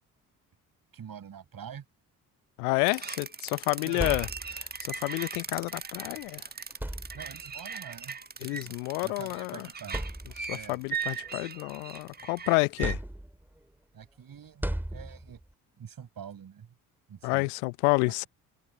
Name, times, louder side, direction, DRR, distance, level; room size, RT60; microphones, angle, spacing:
voice 1, 0.9-1.9 3.8-4.2 7.1-10.1 10.5-10.8 13.9-15.4 15.8-16.7 17.1-17.5, right 8 dB, 50° right, 7.5 m, -46 dB
voice 2, 2.6-4.3 4.8-6.4 8.4-9.6 10.5-13.0 17.2-18.3, left 31 dB, 75° left, 0.8 m, -29 dB
sound 1, 2.9-12.9, right 6 dB, 20° right, 1.2 m, -38 dB
sound 2, 3.7-4.8 6.1-6.2 6.7-7.6 8.7-8.8 9.4-9.5 9.9-10.7 11.2-12.2 12.8-13.6 14.6-15.5, right 1 dB, 5° right, 2.0 m, -36 dB
hypercardioid pair, 50°, 46 cm